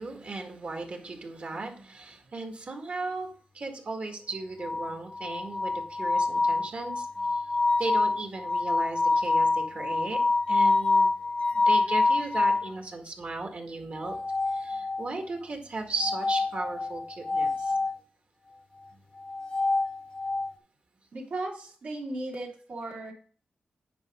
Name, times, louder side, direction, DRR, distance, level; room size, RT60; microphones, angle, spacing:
voice 1, 0.0-7.4 7.8-10.2 10.5-11.1 11.5-14.1 14.5-17.8, right 3 dB, 50° right, 4 dB, 1.8 m, -36 dB
sound 1, 4.6-12.7 14.0-15.2 16.0-18.0 19.2-20.5, left 3 dB, 35° left, 0.8 m, -26 dB
voice 2, 21.1-23.1, right 2 dB, 70° right, -2 dB, 2.4 m, -36 dB
9.5 x 5.1 x 3.6 m, 0.43 s
wide cardioid pair, 110°, 3 cm